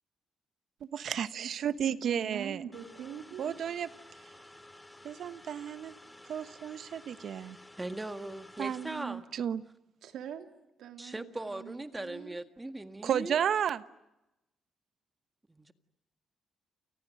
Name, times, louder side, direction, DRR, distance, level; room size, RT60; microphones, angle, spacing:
voice 1, 0.8-2.6 3.4-3.9 5.0-5.9 6.3-7.6 8.6-9.6 13.0-13.8, right 8 dB, 65° right, 1.1 m, -32 dB
voice 2, 2.0-3.9 10.0-12.4, right 9 dB, 85° right, 3.0 m, -44 dB
sound 1, 2.7-9.0, left 1 dB, 10° left, 2.9 m, -53 dB
voice 3, 7.8-9.2 11.0-13.4 15.5-15.7, right 2 dB, 15° right, 1.8 m, -39 dB
30.0 x 29.0 x 6.7 m
cardioid pair, 110°, 0 cm